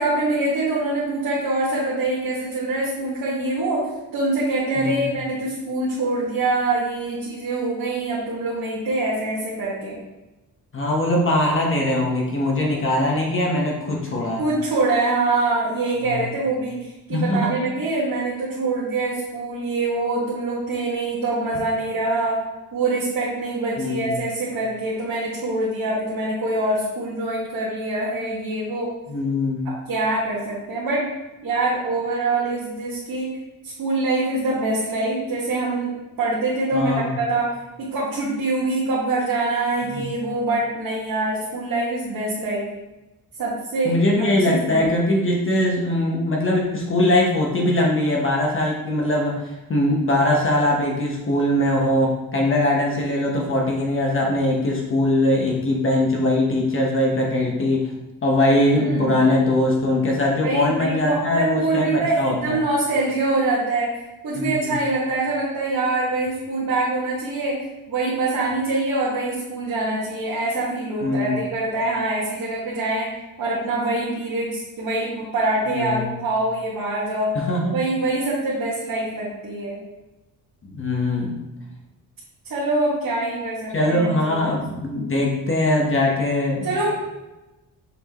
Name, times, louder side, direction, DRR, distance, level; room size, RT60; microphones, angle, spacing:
voice 1, 0.0-3.9 4.1-10.0 14.4-22.4 22.7-28.9 29.9-31.0 31.4-33.3 33.8-37.5 37.9-42.7 43.4-43.9 44.2-44.8 58.7-59.2 60.4-67.5 67.9-73.1 73.4-77.4 77.7-79.8 82.5-84.6 86.6-86.9, right 2 dB, 70° right, -7 dB, 1.8 m, -24 dB
voice 2, 10.7-14.4 16.0-16.3 17.1-17.6 23.8-24.2 29.1-29.7 36.7-37.2 39.9-40.1 43.8-57.9 58.2-62.6 64.3-64.8 71.0-71.4 75.7-76.1 77.3-77.8 80.6-81.4 83.7-86.9, left 1 dB, 35° left, -1 dB, 1.1 m, -21 dB
6.8 x 4.5 x 3.0 m, 1.0 s
cardioid pair, 115°, 35 cm